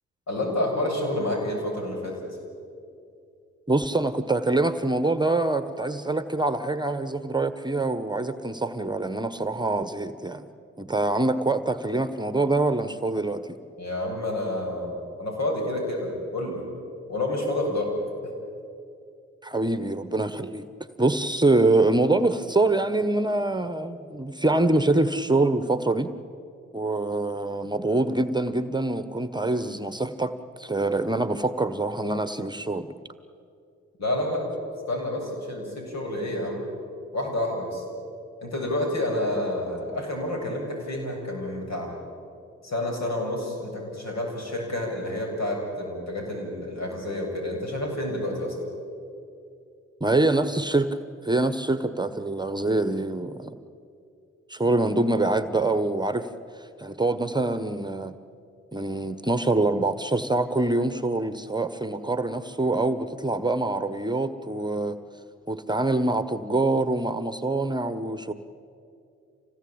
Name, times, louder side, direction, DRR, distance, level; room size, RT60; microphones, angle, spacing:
voice 1, 0.3-2.2 13.8-16.6 17.1-17.9 34.0-34.4 34.9-36.6 37.1-37.8 38.4-41.9 42.6-48.6, left 1 dB, 65° left, 1 dB, 7.4 m, -29 dB
voice 2, 3.7-10.5 10.8-13.6 19.4-20.7 21.0-26.1 26.7-32.9 50.0-51.0 51.2-53.5 54.5-56.3 56.6-58.1 58.7-65.0 65.5-68.3, right 2 dB, 15° right, 11 dB, 1.3 m, -25 dB
26.5 x 18.0 x 8.9 m, 2.5 s
supercardioid pair, 50°, 29 cm